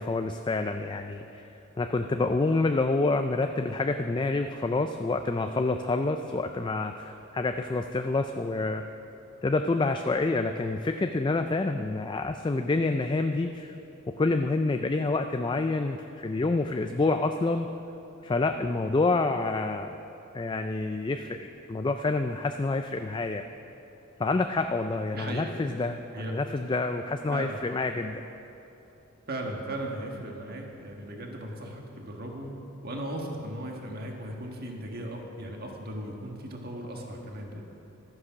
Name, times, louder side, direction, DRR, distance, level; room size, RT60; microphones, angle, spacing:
voice 1, 0.0-1.5 1.8-8.8 9.4-13.7 14.2-17.7 18.2-19.9 20.3-23.4 24.2-28.2, left 3 dB, 20° left, 7 dB, 0.3 m, -28 dB
voice 2, 25.1-25.5 26.1-26.3 27.3-27.6 29.3-37.6, right 1 dB, 45° right, 1 dB, 1.6 m, -37 dB
13.0 x 9.7 x 6.1 m, 2.9 s
head